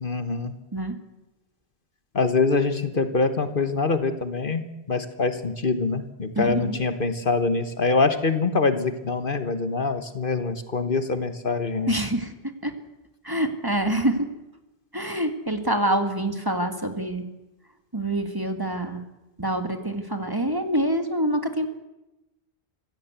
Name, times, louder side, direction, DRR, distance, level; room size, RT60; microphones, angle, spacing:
voice 1, 0.0-0.5 2.1-4.6 4.9-11.9, left 4 dB, 55° left, 9 dB, 1.5 m, -24 dB
voice 2, 6.4-6.8 11.9-12.3 12.6-12.8 13.2-14.3 14.9-17.3 17.9-19.0 19.4-21.7, right 1 dB, 20° right, 6 dB, 1.9 m, -26 dB
25.0 x 16.0 x 8.2 m, 0.97 s
omnidirectional pair, 1.1 m